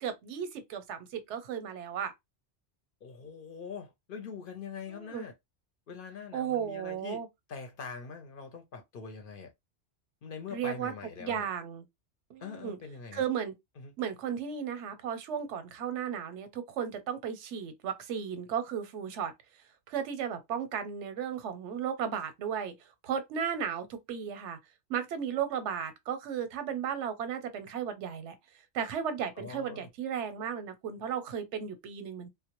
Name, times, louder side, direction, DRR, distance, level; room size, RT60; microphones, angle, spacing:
voice 1, 0.0-2.1 4.9-5.3 6.3-7.3 10.5-10.9 11.2-11.8 12.3-12.8 13.1-13.5 14.0-19.3 19.9-22.7 23.0-24.6 24.9-28.3 28.7-32.3, right 8 dB, 90° right, 0.9 m, -35 dB
voice 2, 3.0-5.3 5.9-7.2 7.5-9.5 10.2-11.5 12.4-13.2 13.8-13.9 29.4-29.9, left 5 dB, 60° left, 0.7 m, -43 dB
2.1 x 2.0 x 2.9 m
omnidirectional pair, 1.2 m